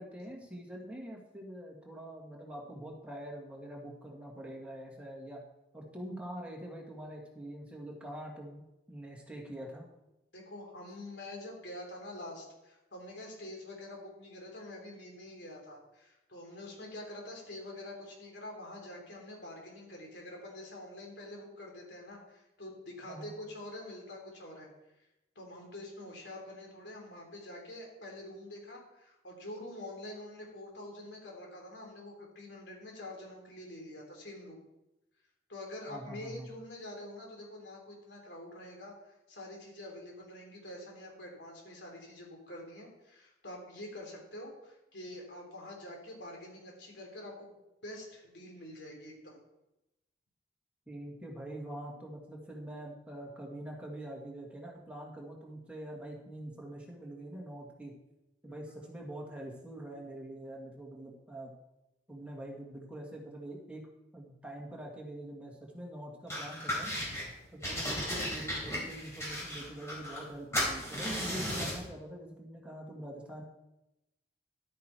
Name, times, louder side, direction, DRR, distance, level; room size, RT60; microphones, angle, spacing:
voice 1, 0.0-5.4 5.7-9.9 23.1-23.3 35.9-36.5 50.9-57.9 58.4-61.5 62.1-63.9 64.1-66.9 67.5-73.4, right 1 dB, 5° right, -2 dB, 2.0 m, -44 dB
voice 2, 10.3-24.7 25.3-34.6 35.5-47.5 47.8-49.4 58.5-58.9, left 1 dB, 75° left, 0 dB, 3.4 m, -46 dB
sound 1, 66.3-67.2 67.6-70.3 70.5-71.8, equal, 15° left, 4.3 m, -35 dB
11.5 x 9.3 x 4.6 m, 0.94 s
head